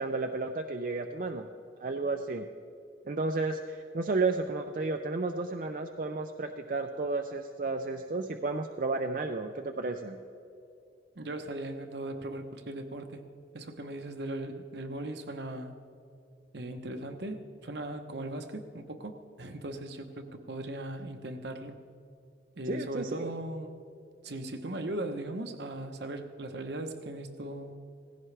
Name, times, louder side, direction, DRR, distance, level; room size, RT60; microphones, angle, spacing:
voice 1, 0.0-1.5 1.8-2.4 3.1-10.2 22.7-23.3, right 3 dB, 45° right, 5 dB, 0.5 m, -32 dB
voice 2, 11.1-13.2 13.5-15.7 16.5-21.8 22.6-23.8 24.2-27.8, right 1 dB, 70° right, 6 dB, 1.0 m, -38 dB
18.0 x 15.5 x 3.3 m, 2.5 s
head